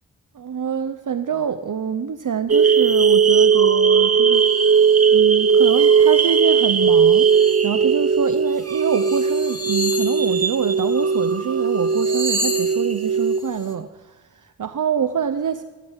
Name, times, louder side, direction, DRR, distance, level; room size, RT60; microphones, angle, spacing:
voice 1, 0.3-4.4 5.1-15.6, right 7 dB, 65° right, 10 dB, 0.8 m, -26 dB
sound 1, 2.5-13.4, right 6 dB, 45° right, 1.1 m, -17 dB
sound 2, 4.3-5.1 5.5-6.1 6.4-7.7 8.2-8.3 8.6-11.3 11.6-13.7, equal, 10° left, 3.0 m, -32 dB
26.0 x 14.5 x 8.2 m, 1.3 s
wide cardioid pair, 105°, 33 cm